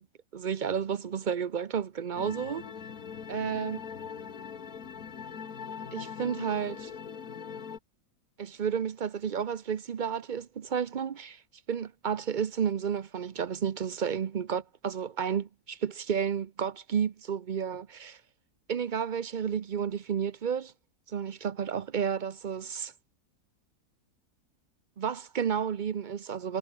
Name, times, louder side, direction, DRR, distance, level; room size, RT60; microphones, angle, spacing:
voice 1, 0.3-2.6 3.3-3.8 5.9-6.9 8.4-11.4 11.7-18.2 18.7-20.7 21.1-22.9 25.0-26.6, right 7 dB, 50° right, 0.5 m, -31 dB
sound 1, 2.2-7.8, left 7 dB, 65° left, 2.0 m, -41 dB
omnidirectional pair, 1.7 m